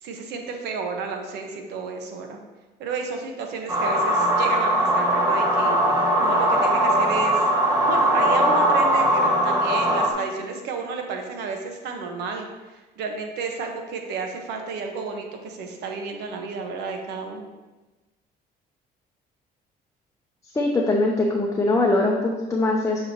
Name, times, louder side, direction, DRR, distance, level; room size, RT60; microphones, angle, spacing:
voice 1, 0.0-2.4 2.8-5.8 6.2-7.5 7.8-17.5, right 4 dB, 80° right, 3 dB, 1.0 m, -32 dB
sound 1, 3.7-10.1, right 1 dB, 25° right, 1.1 m, -20 dB
voice 2, 20.5-23.0, left 2 dB, 20° left, -1 dB, 0.7 m, -22 dB
7.3 x 5.0 x 2.8 m, 1.2 s
cardioid pair, 110°, 17 cm